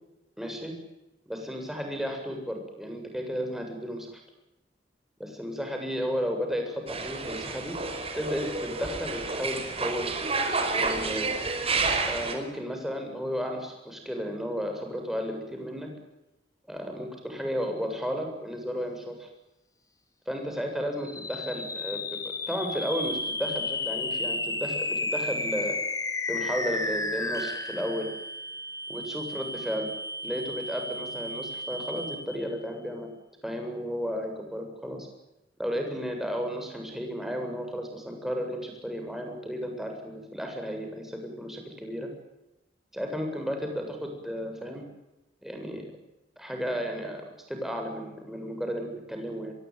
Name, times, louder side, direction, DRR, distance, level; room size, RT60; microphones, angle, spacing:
voice 1, 0.4-0.7 1.3-4.2 5.2-7.8 8.1-10.1 10.7-11.3 12.1-15.9 16.7-19.3 20.3-25.8 26.3-28.1 28.9-29.9 30.2-33.1 33.4-35.1 35.6-42.1 42.9-44.8 45.4-45.9 46.4-49.5, equal, ahead, 3 dB, 7.6 m, -33 dB
sound 1, 6.9-12.3, right 3 dB, 35° right, 5.3 m, -30 dB
sound 2, 21.0-32.5, left 2 dB, 20° left, 4.3 m, -33 dB
26.0 x 23.0 x 9.6 m, 0.93 s
head